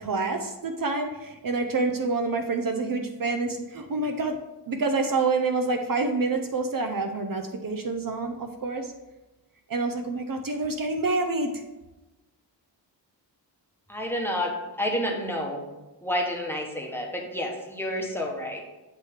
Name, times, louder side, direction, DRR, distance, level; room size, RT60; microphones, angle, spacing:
voice 1, 0.0-4.4 4.7-8.9 9.7-11.5, right 3 dB, 50° right, 5 dB, 0.6 m, -27 dB
voice 2, 13.9-15.6 16.0-18.6, equal, 5° left, -1 dB, 1.0 m, -29 dB
8.2 x 3.2 x 5.6 m, 1.1 s
wide cardioid pair, 135°, 43 cm